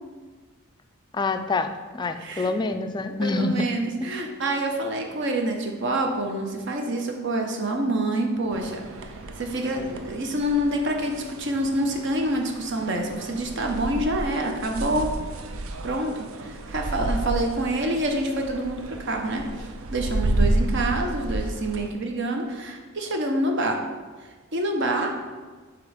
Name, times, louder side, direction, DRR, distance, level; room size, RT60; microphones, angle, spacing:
voice 1, 1.1-3.7 4.0-4.1, left 3 dB, 20° left, 8 dB, 0.3 m, -26 dB
voice 2, 2.2-2.5 3.2-9.1 9.4-15.1 15.8-23.8 24.5-25.1, right 1 dB, 60° right, 3 dB, 0.8 m, -27 dB
sound 1, 8.5-21.9, right 1 dB, 90° right, 0.5 m, -31 dB
7.5 x 3.0 x 4.9 m, 1.4 s
head